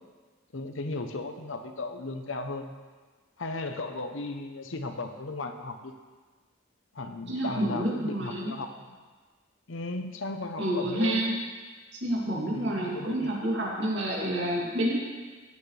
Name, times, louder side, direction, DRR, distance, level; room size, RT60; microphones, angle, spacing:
voice 1, 0.5-2.7 3.4-5.9 6.9-9.0 9.7-11.3 12.5-13.3, left 2 dB, 75° left, 6 dB, 0.9 m, -36 dB
voice 2, 7.3-8.5 10.6-11.4 11.9-14.9, right 1 dB, 60° right, -4 dB, 2.8 m, -29 dB
16.0 x 8.5 x 3.3 m, 1.4 s
head